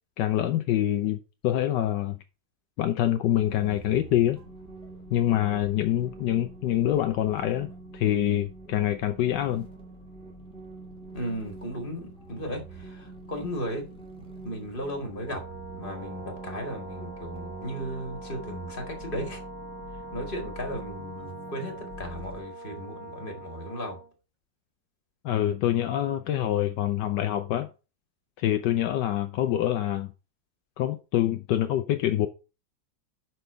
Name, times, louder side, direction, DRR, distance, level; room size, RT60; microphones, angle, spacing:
voice 1, 0.2-2.2 2.8-4.4 5.1-9.7 25.2-27.7 28.4-30.1 30.8-32.3, left 12 dB, 75° left, 1.3 m, -25 dB
sound 1, 3.3-22.4, right 2 dB, 5° left, 2.1 m, -45 dB
voice 2, 11.1-13.8 14.4-15.4 15.7-19.4 20.1-24.0, equal, 30° left, 2.2 m, -35 dB
Brass instrument, 15.2-24.1, right 2 dB, 25° right, 3.1 m, -44 dB
sound 2, 15.8-21.2, right 5 dB, 60° right, 1.2 m, -51 dB
6.0 x 5.5 x 6.6 m
omnidirectional pair, 1.9 m